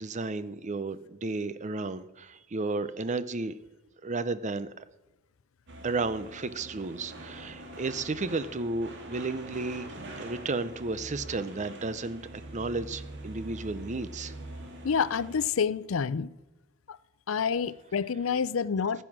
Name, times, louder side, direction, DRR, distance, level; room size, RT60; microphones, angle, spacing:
voice 1, 0.0-3.5 4.0-4.8 5.8-9.9 10.2-14.3, right 3 dB, 35° right, 0.7 m, -33 dB
sound 1, 5.7-15.5, right 1 dB, 60° right, 2.2 m, -44 dB
voice 2, 14.8-16.3 16.9-17.0 17.3-19.0, left 6 dB, 80° left, 0.5 m, -28 dB
15.0 x 9.2 x 6.1 m
head